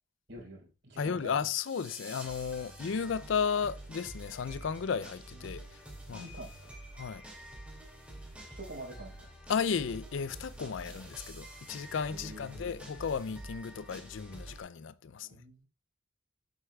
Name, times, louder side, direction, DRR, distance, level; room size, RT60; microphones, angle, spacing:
voice 1, 0.3-1.4 5.3-5.6 6.1-6.7 8.4-9.2 10.6-11.0 12.1-12.7 15.2-15.7, right 1 dB, 60° right, 4.2 m, -47 dB
voice 2, 1.0-6.3 6.9-7.2 9.5-15.4, left 6 dB, 70° left, 0.4 m, -34 dB
sound 1, 1.3-14.6, right 1 dB, 5° right, 2.4 m, -48 dB
7.9 x 7.9 x 2.3 m
head